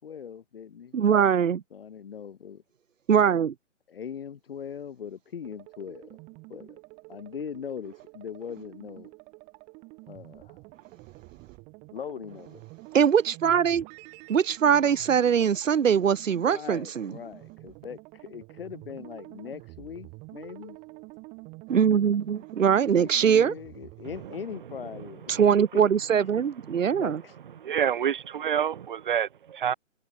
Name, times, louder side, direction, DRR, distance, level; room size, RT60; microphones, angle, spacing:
voice 1, 0.0-1.0 1.7-2.6 3.9-6.2 6.5-6.8 7.1-9.1 10.1-10.6 11.9-12.6 16.5-20.8 22.8-25.4 25.7-25.8 26.4-26.5 27.0-27.3, left 7 dB, 45° left, 5.9 m, -40 dB
voice 2, 0.9-1.6 3.1-3.5 12.9-13.8 14.3-17.1 21.7-23.5 25.3-27.2, right 8 dB, 80° right, 0.6 m, -22 dB
sound 1, 5.4-24.4, right 27 dB, 15° right, 2.9 m, -48 dB
voice 3, 26.7-27.0 27.6-29.7, right 9 dB, 40° right, 1.8 m, -28 dB
figure-of-eight pair, 145°, 38 cm